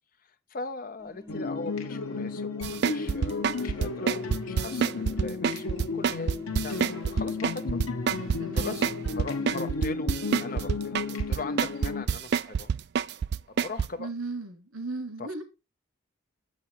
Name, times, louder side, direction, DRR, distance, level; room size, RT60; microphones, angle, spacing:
voice 1, 0.5-7.8 8.5-8.9 9.1-10.1 10.4-12.7 13.5-14.1 15.2-15.4, left 3 dB, 40° left, 0.6 m, -40 dB
sound 1, 1.0-9.5, right 1 dB, 15° right, 1.2 m, -49 dB
sound 2, 1.3-12.0, left 3 dB, 80° left, 1.1 m, -33 dB
sound 3, 2.6-13.9, right 6 dB, 50° right, 0.3 m, -27 dB
voice 2, 8.4-8.8 14.0-15.4, right 3 dB, 90° right, 2.9 m, -36 dB
7.4 x 5.6 x 4.4 m
head